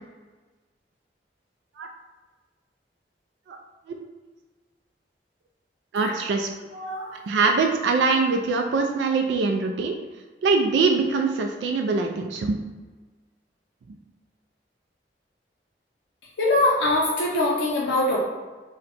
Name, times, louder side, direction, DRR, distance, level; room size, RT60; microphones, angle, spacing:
voice 1, 5.9-6.5 7.3-10.0 10.4-12.6, right 4 dB, 85° right, 4 dB, 0.3 m, -23 dB
voice 2, 6.7-7.1 16.4-18.2, left 2 dB, 85° left, -3 dB, 0.5 m, -22 dB
2.8 x 2.2 x 4.0 m, 1.3 s
head